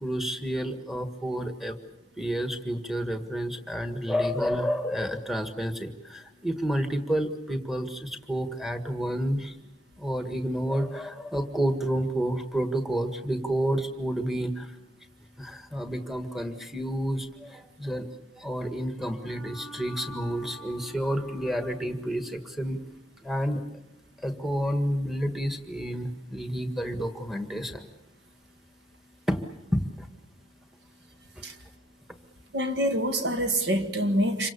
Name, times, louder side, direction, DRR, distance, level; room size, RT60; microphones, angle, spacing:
voice 1, 0.0-1.7 2.2-9.5 10.0-14.7 15.4-18.0 18.4-22.8 23.2-23.6 24.2-27.8 29.3-29.4 29.7-29.8, equal, ahead, 7 dB, 1.7 m, -30 dB
voice 2, 32.5-34.5, equal, 55° right, 7 dB, 2.0 m, -26 dB
27.5 x 24.5 x 7.0 m, 0.89 s
head